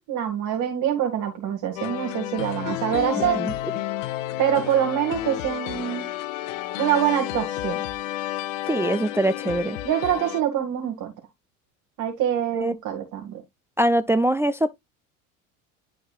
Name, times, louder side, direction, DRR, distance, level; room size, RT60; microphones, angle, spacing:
voice 1, 0.0-3.4 4.4-6.1 6.8-7.8 9.8-11.1 12.0-13.4, right 10 dB, 50° right, 2.0 m, -25 dB
sound 1, 1.8-10.4, left 14 dB, 80° left, 0.9 m, -31 dB
voice 2, 3.2-3.5 8.7-9.8 12.6-12.7 13.8-14.7, right 1 dB, 5° right, 0.3 m, -23 dB
11.5 x 4.7 x 2.4 m
hypercardioid pair, 85°, 38 cm